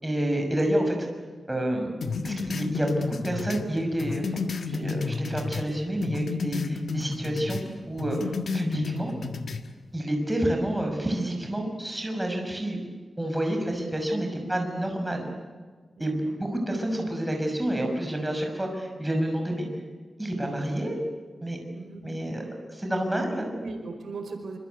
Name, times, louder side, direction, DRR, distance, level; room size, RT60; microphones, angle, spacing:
voice 1, 0.0-1.1 1.5-1.9 2.2-4.4 4.6-9.1 9.9-12.8 13.2-15.3 16.0-19.7 20.2-21.0 21.4-21.6 22.0-22.4 22.7-23.4, right 1 dB, 10° right, 3 dB, 6.1 m, -29 dB
sound 1, 2.0-5.7 6.0-7.7 8.0-9.6, left 4 dB, 65° left, 1.6 m, -31 dB
voice 2, 16.0-16.4 21.7-22.0 23.6-24.6, right 3 dB, 85° right, 5 dB, 4.8 m, -39 dB
26.5 x 25.5 x 8.3 m, 1.5 s
wide cardioid pair, 135°, 0 cm